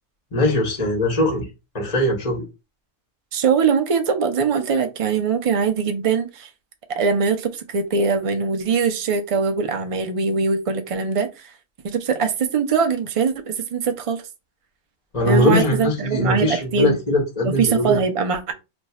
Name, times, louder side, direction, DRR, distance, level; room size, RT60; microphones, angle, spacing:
voice 1, 0.3-1.5 1.7-2.4 15.1-18.0, left 1 dB, 30° left, 1.0 m, -21 dB
voice 2, 3.3-6.5 6.9-11.5 11.8-14.2 15.2-17.0 17.4-18.5, right 5 dB, 60° right, 0.3 m, -22 dB
2.5 x 2.3 x 4.1 m
omnidirectional pair, 1.4 m